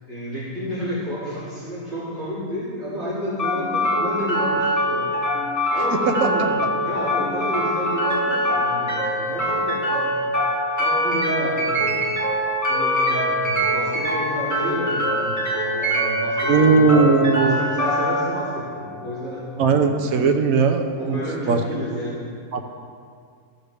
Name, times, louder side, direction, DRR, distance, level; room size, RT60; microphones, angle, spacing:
voice 1, 0.1-5.1 5.7-10.2 10.8-12.0 12.7-20.0 21.0-22.2, equal, 45° right, -12 dB, 3.0 m, -31 dB
sound 1, 3.4-19.4, equal, 10° left, 2.0 m, -23 dB
voice 2, 16.5-17.6 19.6-21.2 21.5-21.6 22.5-22.6, right 4 dB, 70° right, 5 dB, 1.2 m, -18 dB
14.5 x 6.5 x 3.4 m, 2.2 s
omnidirectional pair, 1.6 m